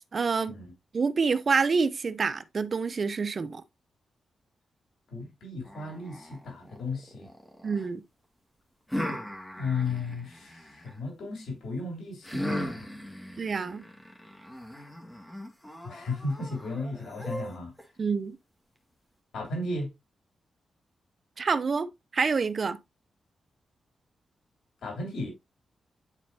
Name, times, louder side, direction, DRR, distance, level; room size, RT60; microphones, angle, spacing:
voice 1, 0.1-0.5 0.9-3.6 7.6-8.0 13.4-13.8 18.0-18.4 21.4-22.8, right 5 dB, 50° right, 0.7 m, -27 dB
voice 2, 5.1-7.3 9.6-12.9 15.8-17.7 19.3-19.9 24.8-25.3, left 3 dB, 85° left, 3.3 m, -34 dB
sound 1, 5.7-7.9 8.9-11.0 12.2-17.8, equal, 10° left, 2.0 m, -38 dB
9.9 x 4.2 x 2.8 m
cardioid pair, 85°, 0 cm